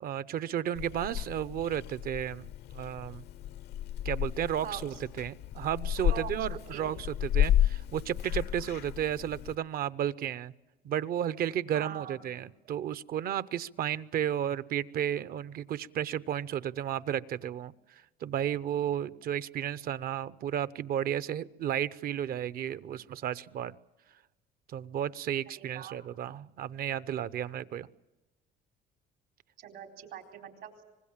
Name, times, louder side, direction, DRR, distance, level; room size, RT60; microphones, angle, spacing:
voice 1, 0.0-3.2 4.0-10.5 10.8-23.7 24.7-27.9, right 10 dB, 60° right, 17 dB, 0.8 m, -33 dB
Purr / Meow, 0.7-9.5, left 11 dB, 75° left, 0.7 m, -32 dB
voice 2, 4.6-5.0 6.1-6.9 11.7-12.2 25.6-26.0 29.6-30.8, right 10 dB, 80° right, 4 dB, 4.1 m, -43 dB
25.0 x 20.5 x 7.4 m, 1.1 s
cardioid pair, 110°, 17 cm